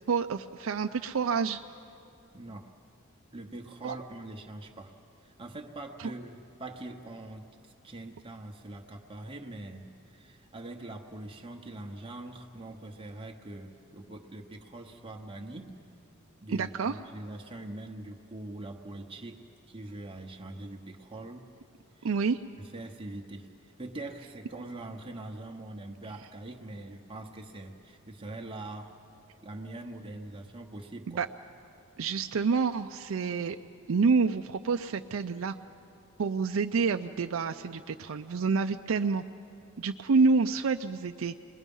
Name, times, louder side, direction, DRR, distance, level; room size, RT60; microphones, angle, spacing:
voice 1, 0.1-1.6 3.8-4.0 16.5-17.0 22.0-22.4 31.1-31.3 32.0-33.6 33.9-35.5 36.2-39.2 39.8-41.3, right 4 dB, 75° right, 5 dB, 0.5 m, -28 dB
voice 2, 2.3-2.7 3.3-15.7 16.4-21.6 21.9-22.1 22.6-23.5 23.8-29.0 29.4-31.2, right 2 dB, 25° right, 2 dB, 1.0 m, -43 dB
29.0 x 21.0 x 5.4 m, 2.6 s
head